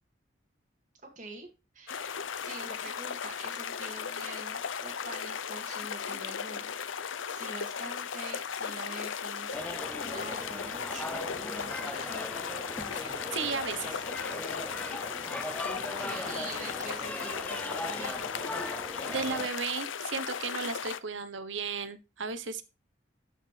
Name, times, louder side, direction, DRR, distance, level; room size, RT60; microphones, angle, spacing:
voice 1, 1.2-1.5 1.7-6.8 7.3-12.2 15.8-18.3, right 2 dB, 40° right, 1 dB, 2.2 m, -45 dB
sound 1, 1.9-21.0, left 7 dB, 85° left, 0.7 m, -36 dB
sound 2, 9.5-19.5, left 1 dB, 5° left, 0.4 m, -39 dB
voice 2, 12.9-14.0 19.1-22.6, right 5 dB, 80° right, 12 dB, 1.0 m, -35 dB
13.5 x 5.6 x 3.3 m, 0.27 s
head